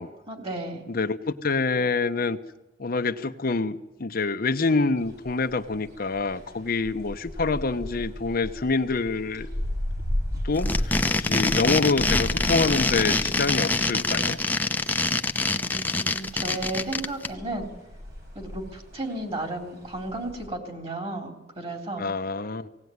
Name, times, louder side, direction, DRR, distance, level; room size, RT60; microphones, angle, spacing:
voice 1, 0.3-0.8 15.5-17.7 18.4-22.0, right 2 dB, 35° right, 5 dB, 3.7 m, -34 dB
voice 2, 0.9-2.4 2.8-9.5 10.4-14.4 22.0-22.7, left 3 dB, 55° left, 8 dB, 0.8 m, -26 dB
sound 1, 5.0-20.5, left 1 dB, 60° right, 7.1 m, -35 dB
sound 2, 10.5-17.3, left 2 dB, 10° left, 0.8 m, -25 dB
18.0 x 18.0 x 9.4 m, 0.96 s
head